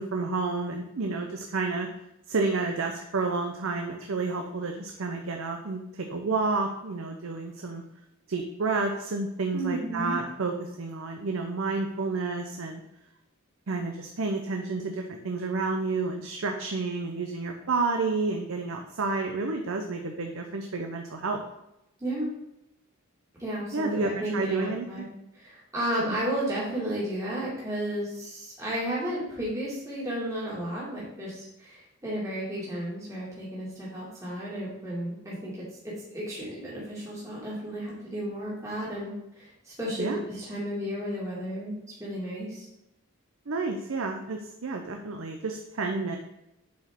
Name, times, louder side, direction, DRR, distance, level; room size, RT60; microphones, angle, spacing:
voice 1, 0.0-1.9 2.3-7.8 8.3-12.8 13.7-21.4 23.7-25.0 40.0-40.2 43.5-46.2, right 3 dB, 65° right, 3 dB, 0.6 m, -30 dB
voice 2, 9.5-10.2 22.0-22.3 23.4-25.1 25.3-35.5 35.8-42.7, right 1 dB, 15° right, -7 dB, 1.9 m, -33 dB
7.4 x 4.7 x 3.6 m, 0.87 s
head